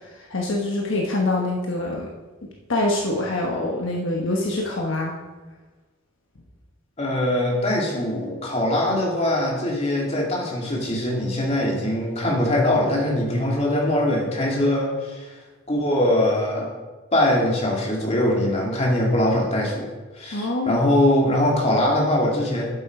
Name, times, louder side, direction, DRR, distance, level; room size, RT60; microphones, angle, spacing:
voice 1, 0.3-2.1 2.4-5.2 20.3-20.8, left 2 dB, 65° left, -1 dB, 1.2 m, -25 dB
voice 2, 7.0-15.3 15.7-16.7 17.1-22.6, left 1 dB, 30° left, -3 dB, 2.7 m, -22 dB
12.0 x 7.4 x 4.9 m, 1.3 s
head